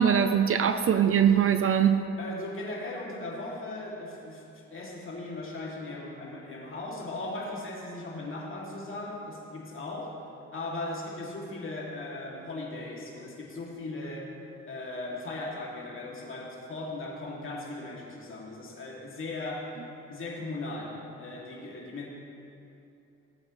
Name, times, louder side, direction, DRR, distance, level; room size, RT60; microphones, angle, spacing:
voice 1, 0.0-2.0, right 8 dB, 45° right, 9 dB, 0.6 m, -22 dB
voice 2, 2.2-10.2 10.5-14.3 14.7-19.7 20.1-22.1, left 2 dB, 45° left, -3 dB, 2.6 m, -38 dB
17.5 x 8.6 x 3.2 m, 2.8 s
cardioid pair, 90°, 30 cm